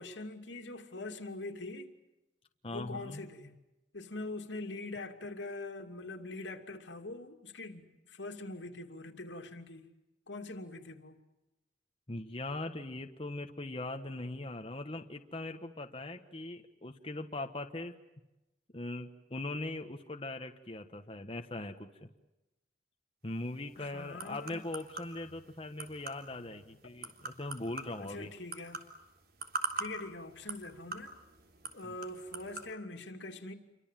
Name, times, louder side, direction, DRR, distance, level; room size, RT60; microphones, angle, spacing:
voice 1, 0.0-2.0 2.7-3.5 3.9-9.9 10.3-11.2 23.8-24.6 28.0-28.8 29.8-31.2 31.7-33.5, left 2 dB, 80° left, 2.8 m, -43 dB
voice 2, 2.6-3.2 12.1-18.0 18.7-22.1 23.2-28.3 31.8-31.9, left 2 dB, 30° left, 1.4 m, -40 dB
sound 1, 23.3-32.7, right 3 dB, 55° right, 3.4 m, -44 dB
29.0 x 24.5 x 7.6 m
head